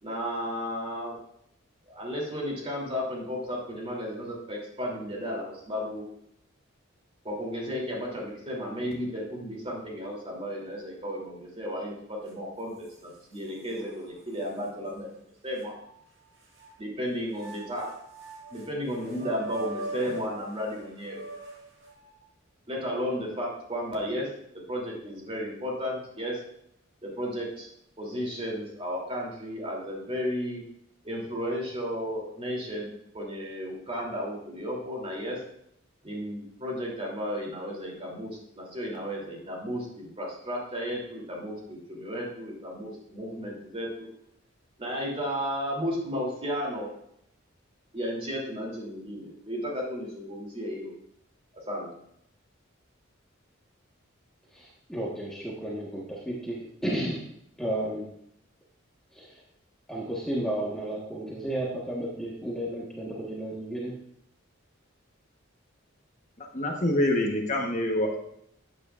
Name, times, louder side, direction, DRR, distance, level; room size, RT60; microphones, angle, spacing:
voice 1, 0.0-1.2 1.9-6.0 7.2-12.7 13.0-15.1 15.4-15.7 16.8-18.0 18.5-21.2 22.7-24.3 24.7-26.4 27.0-27.7 28.0-30.6 31.0-35.4 36.0-44.1 44.8-46.9 47.9-50.9 51.7-51.9, equal, 30° right, -2 dB, 3.0 m, -33 dB
sound 1, 12.3-12.4 12.8-13.8 14.4-14.5 15.6-16.7 17.3-22.2, right 2 dB, 70° right, 4.2 m, -42 dB
voice 2, 54.5-57.2 57.6-58.1 59.1-59.4 59.9-63.9, right 1 dB, 5° left, -5 dB, 1.4 m, -33 dB
voice 3, 66.4-68.2, left 1 dB, 35° left, 1 dB, 1.1 m, -26 dB
13.5 x 9.1 x 2.5 m, 0.74 s
head